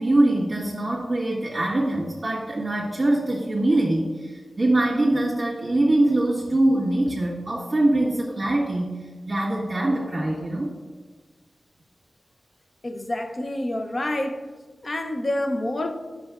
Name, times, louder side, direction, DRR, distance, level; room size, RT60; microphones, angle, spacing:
voice 1, 0.0-10.7, right 1 dB, 35° right, 1.5 m, -23 dB
voice 2, 12.8-14.5 14.8-15.9, left 1 dB, 35° left, 0.6 m, -27 dB
9.7 x 6.3 x 2.4 m
wide cardioid pair, 115°, 0 cm